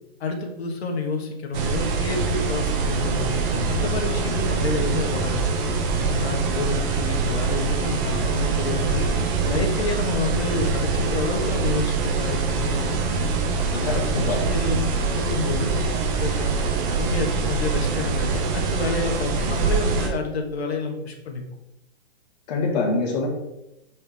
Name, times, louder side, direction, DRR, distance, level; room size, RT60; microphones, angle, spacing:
voice 1, 0.2-5.4 6.0-9.1 9.4-13.1 13.7-15.7 16.2-16.5 16.9-21.5, left 3 dB, 70° left, 2 dB, 1.8 m, -29 dB
sound 1, 1.5-20.1, right 4 dB, 20° right, 0.7 m, -24 dB
voice 2, 13.8-14.5 22.5-23.3, left 3 dB, 40° left, 0 dB, 1.8 m, -24 dB
6.7 x 5.3 x 3.5 m, 0.91 s
hypercardioid pair, 155°, 33 cm